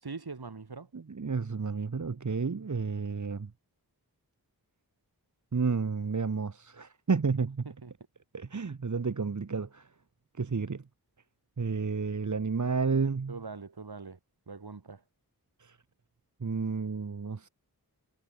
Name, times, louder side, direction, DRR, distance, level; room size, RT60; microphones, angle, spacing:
voice 1, 0.0-0.9 7.6-7.9 13.3-14.2 14.5-15.0, right 4 dB, 70° right, 4.6 m, -42 dB
voice 2, 0.9-3.5 5.5-7.7 8.3-9.9 10.4-10.8 11.6-13.3 15.6-15.8 16.4-17.5, right 5 dB, 50° right, 1.2 m, -31 dB
wide cardioid pair, 70°, 39 cm